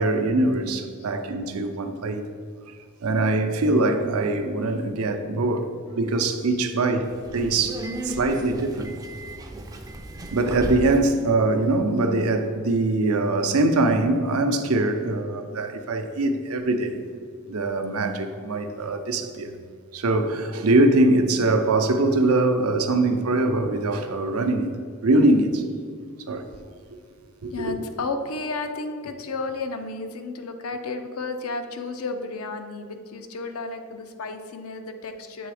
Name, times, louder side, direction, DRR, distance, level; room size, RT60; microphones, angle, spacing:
voice 1, 0.0-2.2 3.0-5.7 5.9-7.1 7.3-8.9 10.3-17.0 17.5-19.5 19.9-24.7 25.0-25.6 26.3-26.4 27.4-27.5, right 2 dB, 75° right, 0.6 m, -22 dB
Subway metro underground, 7.0-11.2, right 1 dB, 15° right, 0.4 m, -35 dB
voice 2, 27.5-35.5, left 3 dB, 75° left, 0.6 m, -32 dB
7.8 x 3.4 x 4.9 m
head